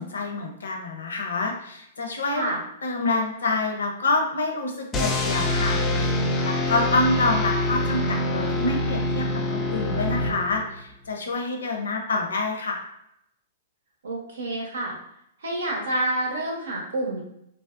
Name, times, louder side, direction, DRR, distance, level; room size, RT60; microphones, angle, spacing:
voice 1, 0.0-2.5 2.8-12.9, left 3 dB, 90° left, 3 dB, 0.5 m, -27 dB
sound 1, 4.9-10.8, left 1 dB, 20° left, 0.4 m, -25 dB
voice 2, 14.0-15.0 15.4-17.2, right 2 dB, 80° right, -1 dB, 0.8 m, -28 dB
2.7 x 2.0 x 2.3 m, 0.75 s
hypercardioid pair, 125°, 0 cm